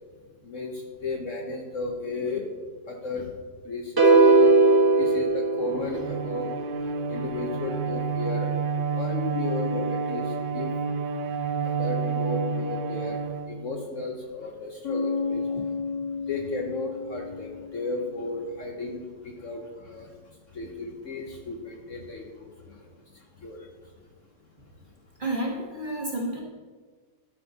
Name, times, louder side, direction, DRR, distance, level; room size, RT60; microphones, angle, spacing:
voice 1, 0.4-2.5 2.9-3.4 3.6-4.6 4.9-8.5 8.9-10.9 11.6-15.7 16.1-23.9, left 3 dB, 55° left, 1 dB, 1.0 m, -35 dB
sound 1, 4.0-6.3, right 2 dB, 15° right, 1.2 m, -18 dB
Bowed string instrument, 5.6-14.0, right 5 dB, 80° right, 1.3 m, -30 dB
Bass guitar, 14.8-18.5, left 4 dB, 75° left, 1.6 m, -32 dB
voice 2, 25.2-26.4, right 1 dB, 30° right, -1 dB, 1.1 m, -30 dB
12.5 x 5.8 x 4.0 m, 1.5 s
omnidirectional pair, 1.9 m